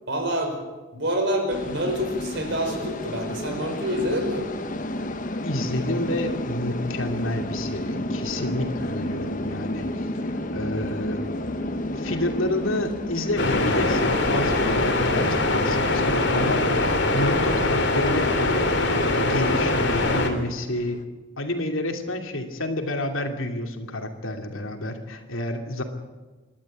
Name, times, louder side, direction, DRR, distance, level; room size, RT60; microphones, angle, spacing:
voice 1, 0.1-0.5 0.9-4.5, equal, 55° right, 3 dB, 5.4 m, -27 dB
sound 1, 1.5-21.0, left 1 dB, 40° left, 1.1 m, -32 dB
voice 2, 5.4-11.2 11.9-18.6 19.2-21.0 21.4-25.8, left 1 dB, 70° left, 4 dB, 2.8 m, -29 dB
sound 2, 13.4-20.3, left 2 dB, 55° left, 2.8 m, -22 dB
28.0 x 12.0 x 8.8 m, 1.2 s
head